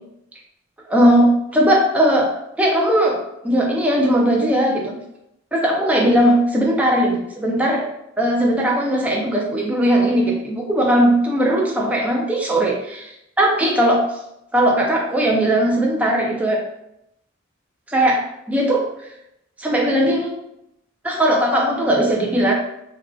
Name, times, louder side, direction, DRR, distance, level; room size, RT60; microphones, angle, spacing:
voice 1, 0.9-2.3 2.6-3.2 3.4-5.0 5.5-7.8 8.2-13.1 13.4-14.0 14.5-16.6 17.9-18.9 19.6-20.3 21.0-22.5, right 1 dB, 5° right, -2 dB, 0.4 m, -18 dB
3.4 x 2.5 x 2.3 m, 0.82 s
head